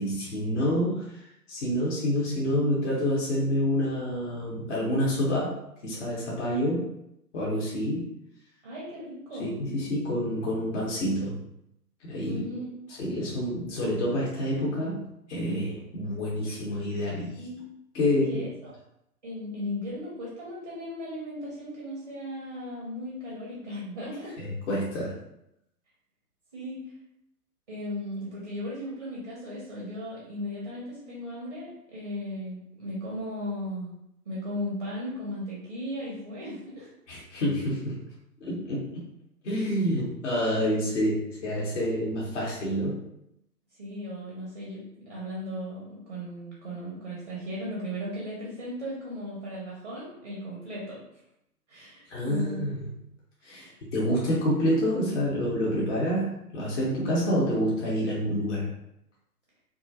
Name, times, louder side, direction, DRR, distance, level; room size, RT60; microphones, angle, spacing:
voice 1, 0.0-6.9 7.3-8.1 9.4-11.4 12.0-12.4 13.0-17.4 17.9-18.4 24.4-25.2 37.1-37.9 38.4-39.0 39.4-43.0 52.1-52.8 53.4-53.6 53.9-58.7, equal, 50° left, -5 dB, 0.8 m, -28 dB
voice 2, 8.6-9.5 12.3-12.7 17.4-17.6 18.3-18.7 19.2-24.4 26.5-26.8 27.7-34.0 34.3-36.9 43.8-51.0 51.7-52.7 53.4-53.8, left 1 dB, 25° right, -5 dB, 0.4 m, -36 dB
2.3 x 2.0 x 2.6 m, 0.80 s
figure-of-eight pair, 125°, 47 cm